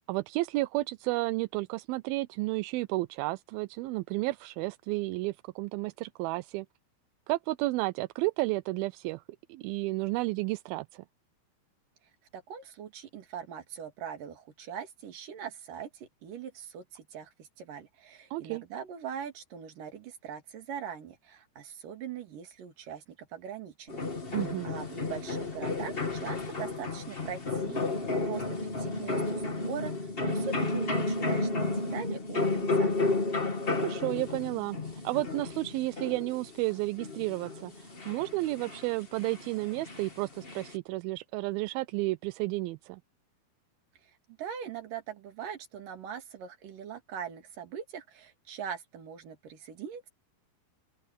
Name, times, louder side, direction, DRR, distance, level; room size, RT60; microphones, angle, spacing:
voice 1, 0.1-6.7 7.3-9.2 9.5-11.0 18.3-18.6 24.3-24.7 33.8-34.8 35.0-43.0, right 20 dB, 80° right, 2.3 m, -32 dB
voice 2, 12.3-24.0 24.3-33.1 44.4-50.1, right 8 dB, 60° right, 3.9 m, -41 dB
sound 1, 23.9-40.7, left 3 dB, 70° left, 0.5 m, -32 dB
open air
omnidirectional pair, 4.5 m